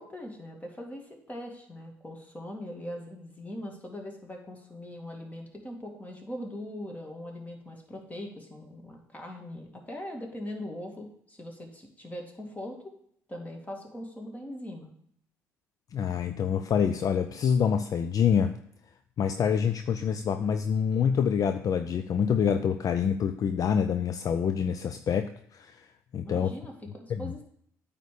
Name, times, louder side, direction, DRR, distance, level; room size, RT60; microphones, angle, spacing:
voice 1, 0.0-12.8 13.3-14.9 26.2-27.4, left 1 dB, 20° left, 1 dB, 2.2 m, -41 dB
voice 2, 15.9-18.5 19.2-25.9 26.1-26.5 27.1-27.3, left 7 dB, 50° left, 9 dB, 0.5 m, -26 dB
9.0 x 3.6 x 6.7 m, 0.67 s
hypercardioid pair, 55°, 8 cm